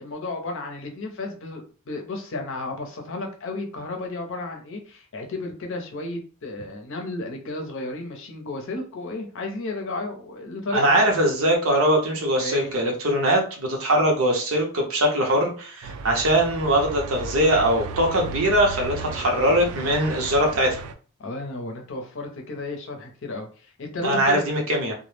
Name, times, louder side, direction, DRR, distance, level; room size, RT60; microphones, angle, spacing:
voice 1, 0.0-11.0 12.4-12.7 21.2-24.5, left 2 dB, 60° left, 3 dB, 0.6 m, -33 dB
voice 2, 10.7-20.8 24.0-24.9, right 1 dB, 65° right, 1 dB, 0.7 m, -21 dB
sound 1, 15.8-20.9, right 3 dB, 85° right, 0.3 m, -35 dB
2.2 x 2.0 x 3.1 m, 0.39 s
head